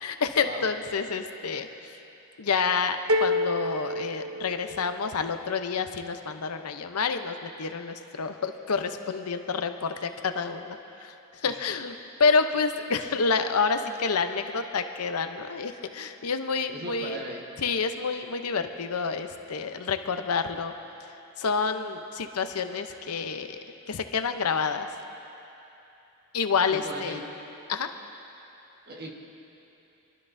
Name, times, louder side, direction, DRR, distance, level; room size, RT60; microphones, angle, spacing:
voice 1, 0.0-1.7 2.4-11.1 11.4-11.9 12.2-17.2 17.6-20.7 21.4-23.6 23.9-24.9 26.3-27.2 27.7-27.9, left 5 dB, 85° left, 7 dB, 0.7 m, -28 dB
sound 1, 3.1-5.1, left 1 dB, 70° right, 0.7 m, -28 dB
voice 2, 16.7-17.5 26.7-27.3 28.9-29.1, right 1 dB, 45° right, 0 dB, 1.5 m, -38 dB
25.5 x 12.0 x 2.7 m, 2.9 s
head